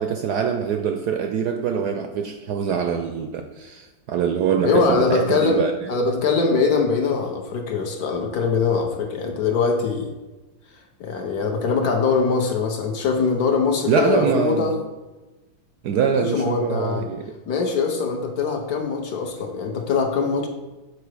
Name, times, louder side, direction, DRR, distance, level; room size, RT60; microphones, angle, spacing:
voice 1, 0.0-5.7 13.9-14.8 15.8-17.2, right 7 dB, 75° right, 6 dB, 0.9 m, -24 dB
voice 2, 4.6-5.6 5.9-10.1 11.0-14.8 16.1-17.1 17.5-20.5, left 4 dB, 60° left, 3 dB, 1.2 m, -22 dB
8.0 x 4.7 x 4.7 m, 1.2 s
omnidirectional pair, 2.1 m